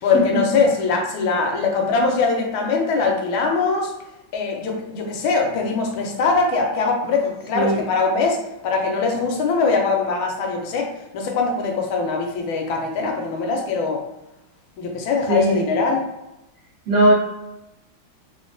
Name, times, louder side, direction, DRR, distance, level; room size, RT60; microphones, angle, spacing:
voice 1, 0.0-3.9 4.3-14.0 14.8-16.0, left 4 dB, 80° left, 2 dB, 1.3 m, -22 dB
voice 2, 15.3-15.9 16.9-17.1, right 1 dB, 75° right, -7 dB, 0.7 m, -18 dB
3.4 x 2.2 x 2.5 m, 0.94 s
omnidirectional pair, 2.3 m